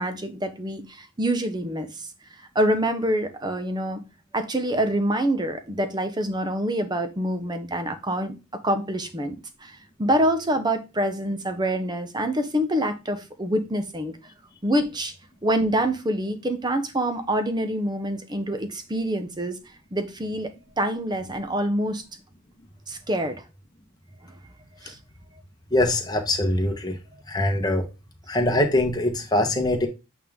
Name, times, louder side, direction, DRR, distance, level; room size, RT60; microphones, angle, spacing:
voice 1, 0.0-2.1 2.5-4.0 4.3-14.2 14.6-15.1 15.4-19.6 19.9-20.5 20.8-22.0 22.9-23.4 24.8-25.0, right 1 dB, 20° right, 0.8 m, -26 dB
voice 2, 25.7-27.0 27.3-27.8 28.3-29.9, left 1 dB, 20° left, 1.2 m, -23 dB
8.4 x 3.6 x 3.6 m
head